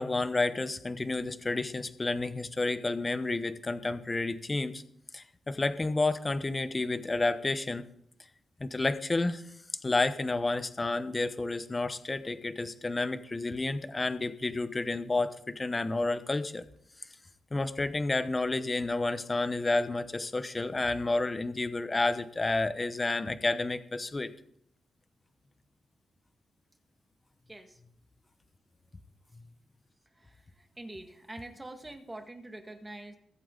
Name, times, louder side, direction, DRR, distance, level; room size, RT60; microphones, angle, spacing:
voice 1, 0.0-4.8 5.1-7.8 8.6-9.4 9.8-16.7 17.5-24.3, left 2 dB, 20° left, 11 dB, 0.9 m, -30 dB
voice 2, 27.5-27.8 30.2-33.2, right 1 dB, 15° right, 4 dB, 1.9 m, -45 dB
22.5 x 8.3 x 3.9 m, 0.67 s
wide cardioid pair, 140°, 0 cm